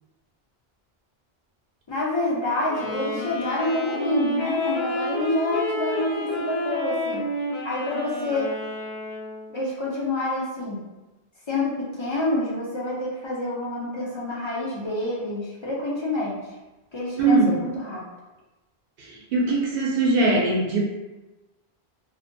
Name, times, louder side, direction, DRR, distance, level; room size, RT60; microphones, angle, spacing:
voice 1, 1.9-7.2 7.6-8.5 9.5-10.8 11.5-16.4 16.9-18.0, left 2 dB, 45° left, -5 dB, 0.3 m, -27 dB
Wind instrument woodwind instrument, 2.7-9.5, left 1 dB, 75° left, 0.8 m, -30 dB
voice 2, 17.2-17.5 19.3-20.8, right 3 dB, 65° right, -3 dB, 0.8 m, -20 dB
2.6 x 2.1 x 2.6 m, 1.1 s
omnidirectional pair, 1.1 m